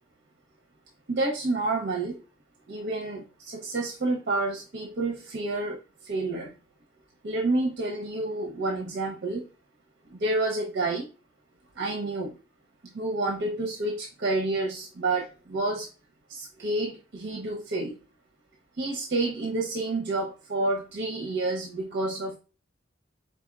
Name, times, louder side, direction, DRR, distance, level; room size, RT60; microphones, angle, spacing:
voice 1, 1.1-2.2 2.7-6.5 7.2-9.4 10.1-11.1 11.8-12.3 12.9-15.9 16.3-17.9 18.8-22.4, right 2 dB, 65° right, 1 dB, 0.7 m, -29 dB
4.2 x 4.0 x 2.3 m, 0.33 s
head